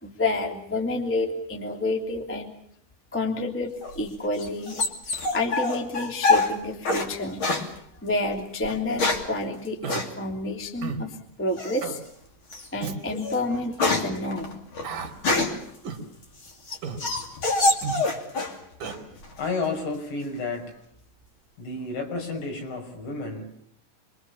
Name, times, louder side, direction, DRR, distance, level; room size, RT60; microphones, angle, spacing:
voice 1, 0.0-2.5 3.1-4.8 5.3-7.4 8.0-12.0 12.7-14.6, left 2 dB, 5° left, 3 dB, 1.6 m, -29 dB
sound 1, 3.8-7.1 7.4-7.7 8.6-9.4 9.9-10.1 11.6-12.0 12.5-12.7 13.1-15.7 16.2-18.6 18.8-19.5, left 2 dB, 30° left, 2.8 m, -26 dB
Human voice, 9.8-10.0 10.8-11.1 11.8-12.0 12.8-13.0 13.8-14.0 14.8-15.1 15.8-16.0 16.8-17.0 17.8-18.0 18.8-19.0, right 6 dB, 50° right, 3.7 m, -33 dB
voice 2, 19.4-20.7 21.6-23.6, left 3 dB, 60° left, 2 dB, 7.9 m, -31 dB
27.0 x 23.5 x 7.1 m, 0.66 s
omnidirectional pair, 5.7 m